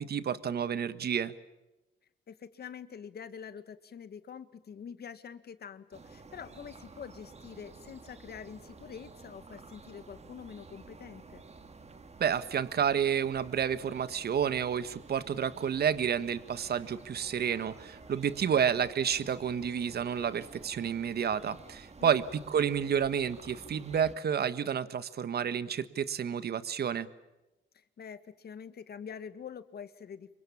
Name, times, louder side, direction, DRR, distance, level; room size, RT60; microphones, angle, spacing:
voice 1, 0.0-1.3 12.2-27.1, right 8 dB, 60° right, 14 dB, 1.6 m, -30 dB
voice 2, 2.3-11.4 18.5-18.9 22.0-22.2 27.7-30.4, left 7 dB, 60° left, 11 dB, 2.0 m, -46 dB
sound 1, 5.9-24.2, right 4 dB, 35° right, 2.6 m, -52 dB
27.5 x 24.5 x 7.3 m, 1.0 s
cardioid pair, 95°, 19 cm